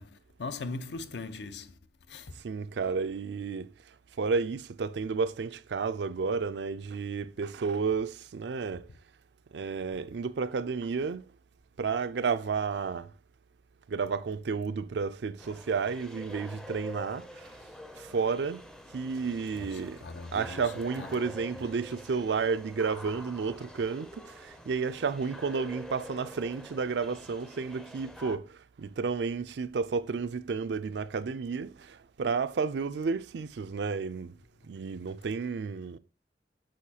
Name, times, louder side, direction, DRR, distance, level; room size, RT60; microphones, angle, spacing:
voice 1, 0.0-1.8 2.1-2.4 19.5-20.6 21.0-21.1 21.5-21.6, left 3 dB, 75° left, 0.6 m, -40 dB
voice 2, 2.4-3.7 4.2-8.8 9.5-11.2 11.8-13.1 13.9-17.3 18.0-18.6 18.9-20.0 20.3-28.5 28.8-34.3 34.7-36.0, right 5 dB, 75° right, 0.4 m, -31 dB
sound 1, 15.4-28.4, equal, 5° left, 0.4 m, -47 dB
6.4 x 5.8 x 2.8 m
head